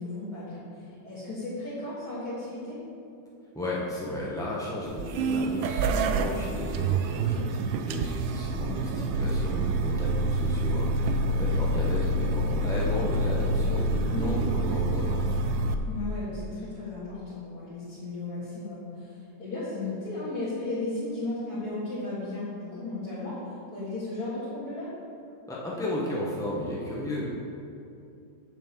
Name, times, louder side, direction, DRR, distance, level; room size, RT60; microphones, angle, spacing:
voice 1, 0.0-2.8 8.6-9.1 14.1-14.4 15.8-24.9, left 2 dB, 55° left, -13 dB, 2.3 m, -35 dB
voice 2, 3.5-15.4 25.5-27.3, left 1 dB, 5° left, -6 dB, 0.4 m, -34 dB
sound 1, 4.9-15.7, right 2 dB, 90° right, 1.3 m, -27 dB
7.1 x 4.6 x 6.9 m, 2.6 s
omnidirectional pair, 2.0 m